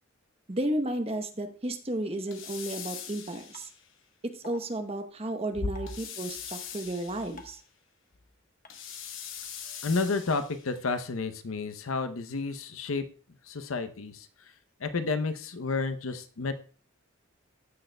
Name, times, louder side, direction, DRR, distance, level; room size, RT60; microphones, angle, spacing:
voice 1, 0.5-3.7 4.2-7.6, right 1 dB, 30° right, 7 dB, 0.9 m, -33 dB
sound 1, 2.3-3.9 5.9-7.5 8.7-10.7, left 8 dB, 70° left, 1.0 m, -42 dB
sound 2, 3.5-3.6 4.4-4.6 5.8-5.9 7.4-7.6 8.6-8.7 10.0-10.1, left 4 dB, 40° left, 1.2 m, -47 dB
voice 2, 9.8-13.0 13.5-14.3 14.8-16.5, left 4 dB, 90° left, 9 dB, 0.7 m, -31 dB
14.5 x 6.4 x 2.2 m, 0.39 s
head